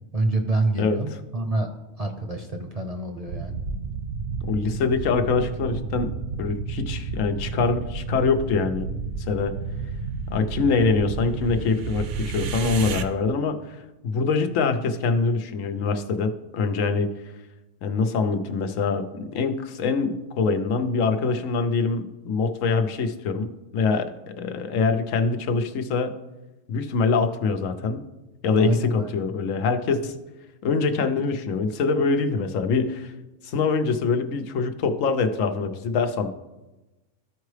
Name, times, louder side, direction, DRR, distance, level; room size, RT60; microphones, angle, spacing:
voice 1, 0.1-1.7 2.0-3.6 28.6-29.1, right 2 dB, 40° right, 4 dB, 0.6 m, -26 dB
sound 1, 3.3-13.0, right 4 dB, 70° right, 0.9 m, -31 dB
voice 2, 4.4-6.1 6.4-8.9 9.3-9.5 10.3-13.8 14.0-17.1 17.8-26.1 26.7-28.0 28.4-30.2 30.6-33.1 33.4-36.3, left 4 dB, 85° left, 7 dB, 1.1 m, -24 dB
14.0 x 4.6 x 3.2 m, 1.1 s
omnidirectional pair, 1.3 m